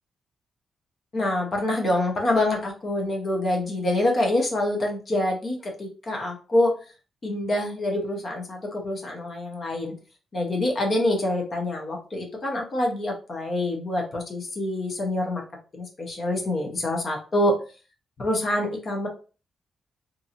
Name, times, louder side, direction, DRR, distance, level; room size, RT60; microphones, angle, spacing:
voice 1, 1.1-6.7 7.2-9.9 10.3-15.4 15.7-17.6 18.2-19.1, left 1 dB, 40° left, 1 dB, 0.7 m, -26 dB
2.6 x 2.5 x 2.7 m, 0.35 s
cardioid pair, 125°, 0 cm